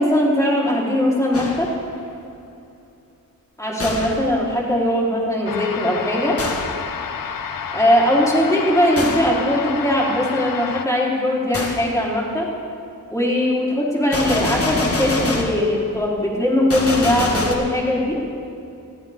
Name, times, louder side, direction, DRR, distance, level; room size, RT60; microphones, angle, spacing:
voice 1, 0.0-1.7 3.6-6.4 7.7-12.5 13.1-18.2, left 1 dB, 10° left, -5 dB, 4.1 m, -20 dB
Gunshot gunfire, 1.3-1.8 3.8-4.3 6.4-6.9 9.0-9.4 11.5-11.9 14.1-15.7 16.7-17.5, left 2 dB, 40° left, 1.8 m, -25 dB
sound 1, 5.5-10.9, left 7 dB, 70° left, 0.8 m, -30 dB
21.5 x 14.5 x 3.8 m, 2.6 s
wide cardioid pair, 95°, 35 cm